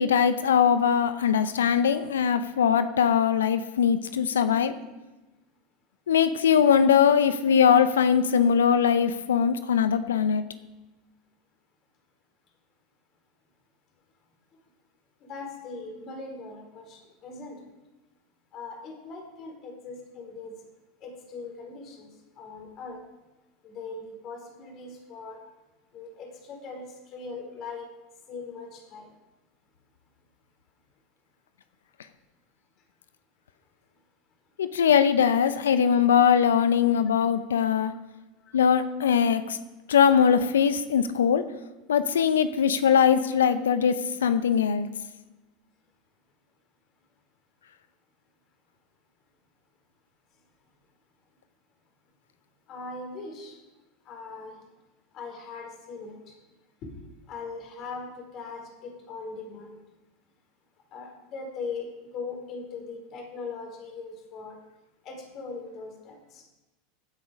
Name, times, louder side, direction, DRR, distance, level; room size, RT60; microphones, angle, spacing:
voice 1, 0.0-4.7 6.1-10.4 34.6-37.9 38.5-39.6 39.9-41.4 41.9-43.9 44.2-44.9, left 7 dB, 80° left, 12 dB, 0.8 m, -21 dB
voice 2, 15.2-17.6 18.5-20.5 21.0-22.1 22.4-23.0 23.6-25.4 25.9-27.8 28.3-29.1 38.5-38.6 52.7-53.6 54.1-54.6 55.1-56.3 56.8-56.9 57.3-59.8 60.9-64.6 65.0-66.4, left 4 dB, 45° left, 1 dB, 4.4 m, -40 dB
16.0 x 8.4 x 5.2 m, 1.1 s
hypercardioid pair, 85°, 0 cm